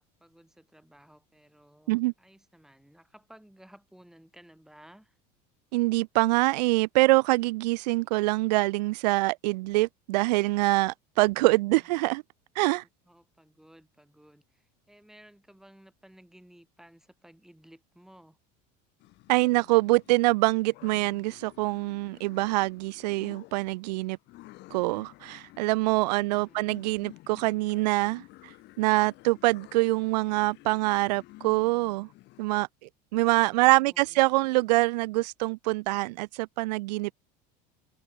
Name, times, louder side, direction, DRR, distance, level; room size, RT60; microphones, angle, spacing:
voice 1, 0.0-5.2 12.6-18.4 26.1-26.7 33.1-34.2, right 1 dB, ahead, 4.1 m, -56 dB
voice 2, 5.7-12.2 12.6-12.8 19.3-24.2 24.7-28.5 28.8-32.1 32.4-32.7 33.1-37.1, right 22 dB, 90° right, 0.6 m, -25 dB
sound 1, 19.0-32.5, left 19 dB, 55° left, 2.2 m, -53 dB
supercardioid pair, 115°, 21 cm